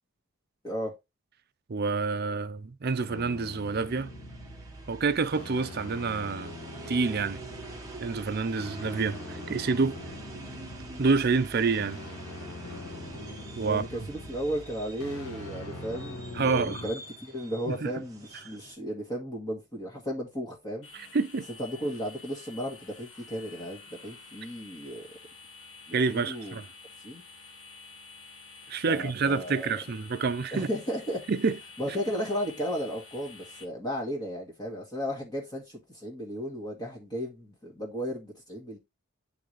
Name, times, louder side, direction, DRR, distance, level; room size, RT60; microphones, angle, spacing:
voice 1, 0.6-0.9 13.6-20.9 21.6-25.1 25.9-26.6 27.0-27.2 28.9-29.7 30.5-31.2 31.8-38.8, equal, 20° left, 1.6 m, -34 dB
voice 2, 1.7-4.1 4.9-6.5 6.9-7.4 8.0-10.0 11.0-12.0 13.6-13.8 16.3-16.8 17.7-17.9 20.9-21.5 25.9-26.6 28.7-30.7 31.3-31.6 31.9-32.0, right 4 dB, 45° right, 0.5 m, -28 dB
sound 1, 2.8-18.7, right 2 dB, 15° right, 1.3 m, -46 dB
sound 2, 3.1-16.9, left 1 dB, 85° left, 1.7 m, -43 dB
sound 3, 20.8-33.6, left 4 dB, 60° left, 1.5 m, -50 dB
9.2 x 3.9 x 3.1 m
head